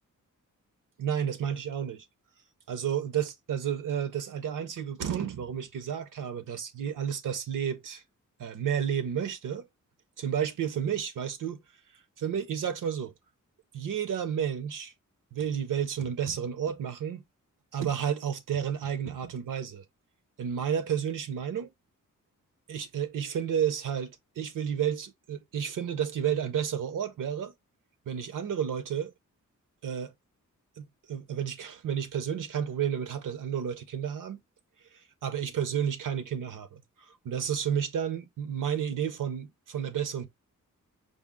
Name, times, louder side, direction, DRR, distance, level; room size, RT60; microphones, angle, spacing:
voice 1, 1.0-2.0 2.7-8.0 8.4-9.7 10.2-11.6 12.2-13.1 13.7-14.9 15.3-17.2 17.7-19.8 20.4-21.7 22.7-27.5 28.1-29.1 29.8-30.1 30.8-34.4 34.9-40.3, right 8 dB, 75° right, 0.7 m, -31 dB
4.9 x 2.0 x 3.5 m
wide cardioid pair, 110°, 32 cm